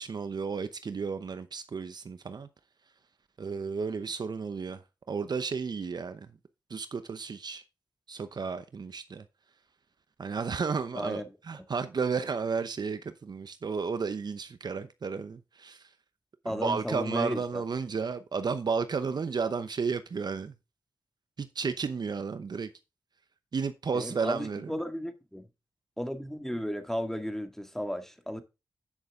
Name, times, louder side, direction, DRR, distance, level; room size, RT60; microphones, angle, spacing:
voice 1, 0.0-2.5 3.4-4.8 5.1-6.3 6.7-7.6 8.1-9.2 10.2-15.9 16.4-20.5 21.4-22.7 23.5-24.7, right 5 dB, 60° right, 0.8 m, -33 dB
voice 2, 10.9-11.3 16.4-17.6 23.9-25.5 26.0-28.4, equal, 5° left, 1.9 m, -34 dB
9.9 x 6.3 x 3.7 m
cardioid pair, 45°, 8 cm